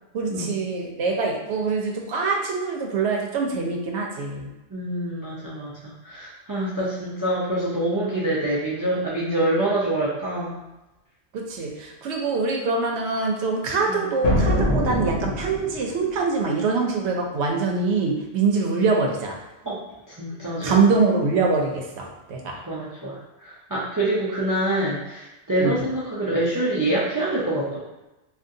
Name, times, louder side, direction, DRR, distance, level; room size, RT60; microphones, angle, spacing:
voice 1, 0.1-4.5 11.3-19.4 20.6-22.6 25.6-25.8, right 4 dB, 65° right, 1 dB, 0.9 m, -24 dB
voice 2, 4.7-10.6 13.9-14.0 19.6-19.8 20.1-20.7 22.7-27.8, right 1 dB, 35° right, -8 dB, 0.3 m, -26 dB
sound 1, 14.2-16.0, equal, 80° left, 1.1 m, -23 dB
3.6 x 2.4 x 2.6 m, 1.0 s
omnidirectional pair, 1.3 m